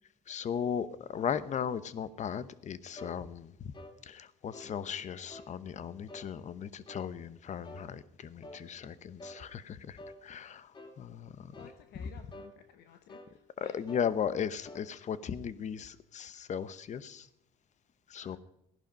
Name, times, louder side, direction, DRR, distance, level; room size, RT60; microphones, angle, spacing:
voice 1, 0.3-3.7 4.0-11.6 12.0-12.1 13.6-17.3 18.1-18.4, left 8 dB, 45° left, 16 dB, 0.9 m, -37 dB
sound 1, 3.0-3.2 3.7-4.0 4.5-4.8 5.3-5.5 6.1-6.3 6.9-7.1 7.6-7.9 8.4-8.6 9.2-9.4 10.0-10.2 10.7-11.0 11.5-11.8 12.3-12.6 13.1-13.4 13.9-14.1 14.6-14.9, left 1 dB, 25° left, 1.8 m, -48 dB
voice 2, 11.6-13.8 18.2-18.4, left 9 dB, 80° left, 7 dB, 1.1 m, -54 dB
17.0 x 11.0 x 5.2 m, 0.79 s
cardioid pair, 110°, 17 cm